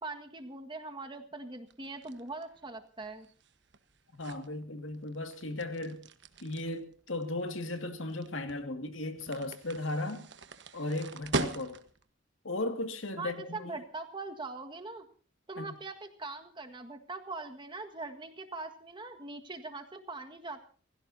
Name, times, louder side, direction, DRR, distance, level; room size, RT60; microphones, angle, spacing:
voice 1, 0.0-3.3 13.2-15.1 15.5-20.6, right 3 dB, 25° right, 1.7 m, -42 dB
sound 1, 1.7-12.1, right 3 dB, 60° right, 1.3 m, -41 dB
voice 2, 4.1-6.0 6.4-10.3 10.7-11.8 12.4-13.8 15.6-15.7, left 2 dB, 75° left, 2.2 m, -36 dB
28.5 x 16.0 x 2.8 m
head